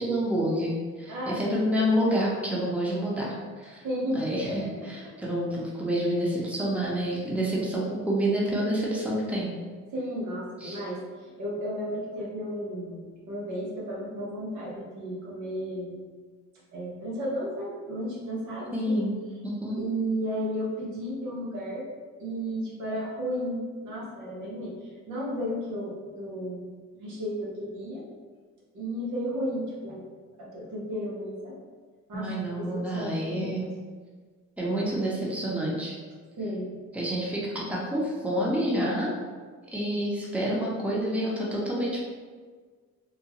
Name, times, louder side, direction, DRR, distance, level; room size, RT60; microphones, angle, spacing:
voice 1, 0.0-3.8 4.1-9.5 10.6-10.8 18.7-19.1 19.4-19.8 32.1-33.7 34.6-35.9 36.9-39.1 39.7-42.0, equal, 5° right, -5 dB, 0.8 m, -28 dB
voice 2, 1.1-1.7 3.8-4.7 6.4-6.5 9.9-16.0 16.7-19.0 19.7-21.8 22.2-28.0 28.7-30.0 30.4-31.6 32.1-33.7 36.4-36.8, equal, 75° right, -5 dB, 1.1 m, -33 dB
3.7 x 2.4 x 2.9 m, 1.5 s
cardioid pair, 90°, 30 cm